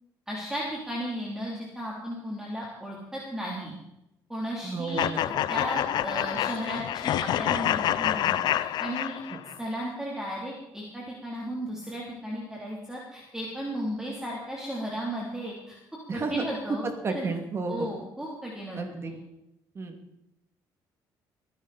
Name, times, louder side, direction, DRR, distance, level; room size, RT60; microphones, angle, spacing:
voice 1, 0.3-3.7 4.3-9.2 9.6-15.7 16.1-17.3 17.7-18.8 19.1-19.2, equal, 5° right, -3 dB, 3.3 m, -35 dB
voice 2, 4.6-5.3 9.3-9.4 16.1-16.4 17.0-17.9 18.7-19.1 19.7-20.0, right 3 dB, 35° right, 5 dB, 2.5 m, -32 dB
sound 1, 5.0-9.6, left 12 dB, 65° left, 0.6 m, -27 dB
22.5 x 11.0 x 4.3 m, 0.86 s
cardioid pair, 125°, 8 cm